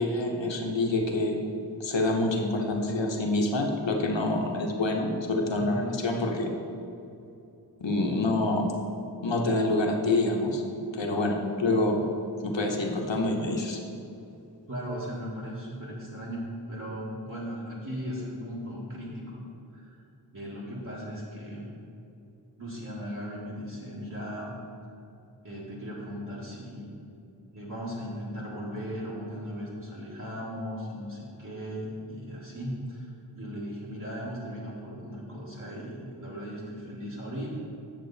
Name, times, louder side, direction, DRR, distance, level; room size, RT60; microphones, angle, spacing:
voice 1, 0.0-1.4 1.8-6.5 7.8-8.7 9.2-10.6 10.9-12.1 12.4-13.8, left 2 dB, 80° left, 2 dB, 1.1 m, -27 dB
voice 2, 5.6-5.9 14.7-20.0 20.3-21.7 22.6-24.5 25.4-26.9 27.5-37.6, equal, 45° right, -9 dB, 1.7 m, -37 dB
7.9 x 6.9 x 4.1 m, 2.6 s
wide cardioid pair, 65°, 44 cm